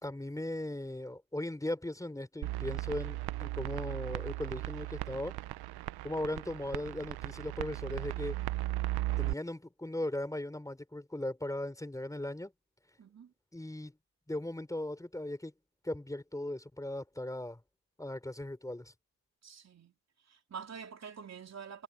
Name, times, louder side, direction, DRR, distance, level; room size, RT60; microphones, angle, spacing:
voice 1, 0.0-5.4 6.0-8.4 9.2-12.5 13.5-13.9 14.3-15.5 15.8-17.6 18.0-18.9, left 1 dB, 10° left, 4.5 m, -38 dB
sound 1, 2.4-9.3, right 17 dB, 80° right, 0.8 m, -36 dB
voice 2, 13.0-13.3 19.4-19.9 20.3-21.8, right 6 dB, 45° right, 3.5 m, -46 dB
cardioid pair, 95°, 38 cm